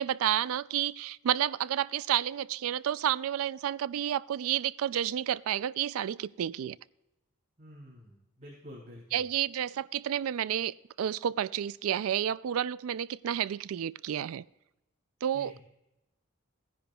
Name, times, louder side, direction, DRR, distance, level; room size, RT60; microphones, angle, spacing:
voice 1, 0.0-6.8 9.1-14.4 15.2-15.6, right 10 dB, 80° right, 0.3 m, -30 dB
voice 2, 7.6-9.2 15.3-15.6, equal, 30° right, 4.9 m, -49 dB
18.5 x 10.0 x 2.3 m
head